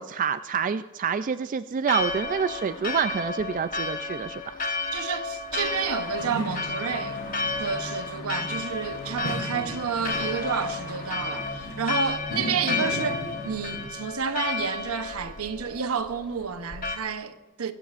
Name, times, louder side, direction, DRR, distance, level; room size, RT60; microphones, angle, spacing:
voice 1, 0.0-4.4, right 6 dB, 35° right, 0.3 m, -27 dB
Church bell, 1.8-17.0, left 3 dB, 40° left, 1.2 m, -32 dB
voice 2, 4.9-7.2 7.6-17.7, right 6 dB, 80° right, 0.9 m, -30 dB
sound 1, 6.2-13.9, left 1 dB, 65° left, 3.5 m, -37 dB
24.5 x 14.5 x 2.5 m
head